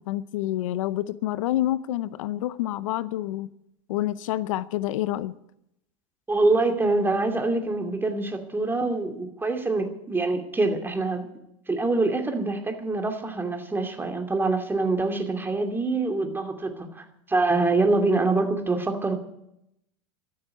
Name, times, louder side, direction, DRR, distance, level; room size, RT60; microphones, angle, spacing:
voice 1, 0.0-3.5 3.9-5.4, left 14 dB, 80° left, 0.7 m, -28 dB
voice 2, 6.3-11.3 11.7-19.2, right 3 dB, 15° right, 2.6 m, -25 dB
13.5 x 8.7 x 9.7 m
hypercardioid pair, 105°, 17 cm